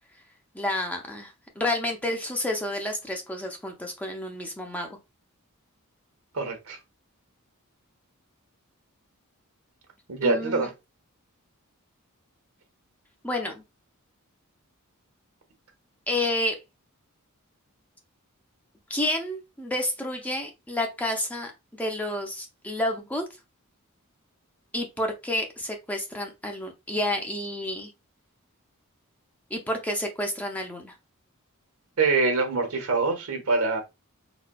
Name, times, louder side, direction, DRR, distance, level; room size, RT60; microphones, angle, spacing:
voice 1, 0.5-5.0 10.2-10.7 13.2-13.6 16.1-16.6 18.9-23.2 24.7-27.9 29.5-30.9, left 1 dB, 5° left, 0.5 m, -30 dB
voice 2, 6.3-6.8 10.1-10.7 32.0-33.8, right 3 dB, 80° right, 1.0 m, -24 dB
4.1 x 2.2 x 2.2 m
head